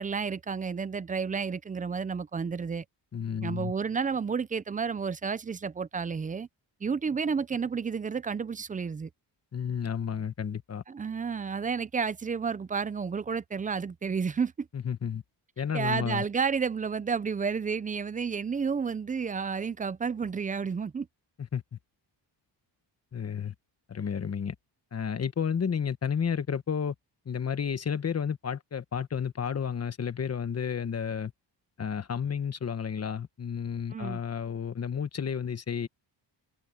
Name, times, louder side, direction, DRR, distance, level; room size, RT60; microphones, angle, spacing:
voice 1, 0.0-2.8 3.4-6.5 6.8-9.1 10.9-14.7 15.7-21.1 33.9-34.2, right 5 dB, 20° right, 0.3 m, -31 dB
voice 2, 3.1-3.7 9.5-10.8 14.7-15.2 15.6-16.2 21.4-21.8 23.1-23.5 23.9-24.5 24.9-26.9 27.2-31.3 31.8-35.9, left 7 dB, 35° left, 1.3 m, -31 dB
cardioid pair, 140°, 46 cm